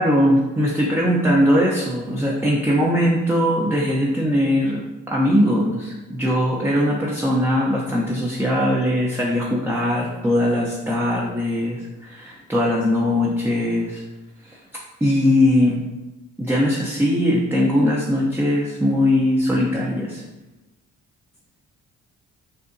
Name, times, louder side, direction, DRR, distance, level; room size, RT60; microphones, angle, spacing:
voice 1, 0.0-4.8 5.1-14.0 14.4-14.6 15.0-15.8 16.4-20.2, left 1 dB, 5° right, -4 dB, 0.6 m, -20 dB
6.6 x 2.7 x 2.6 m, 1.1 s
cardioid pair, 90°, 30 cm